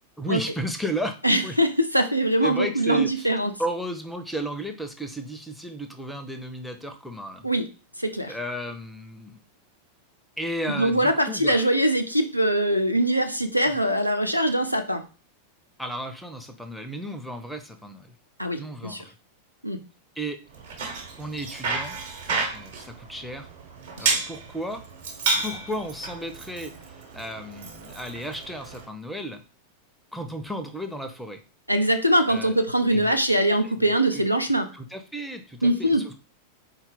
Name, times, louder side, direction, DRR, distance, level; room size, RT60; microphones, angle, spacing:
voice 1, 0.2-1.2 1.4-1.6 2.4-3.3 3.6-7.5 8.3-9.4 10.4-11.6 13.7-13.8 15.8-18.2 18.6-19.1 20.2-20.4 21.2-22.0 22.5-23.5 24.0-24.8 25.3-29.4 30.1-31.4 32.3-32.5 32.9-33.2 33.8-34.2 34.7-36.2, right 1 dB, ahead, 7 dB, 0.5 m, -34 dB
voice 2, 1.2-3.5 7.4-7.7 8.0-8.4 10.7-15.0 18.4-19.0 19.6-19.8 24.0-24.2 31.7-34.7 35.6-36.0, right 1 dB, 90° right, 8 dB, 0.4 m, -22 dB
Bicycle, 20.5-28.9, right 3 dB, 55° right, 1.1 m, -31 dB
4.1 x 2.3 x 3.8 m, 0.35 s
figure-of-eight pair, 90°, 0 cm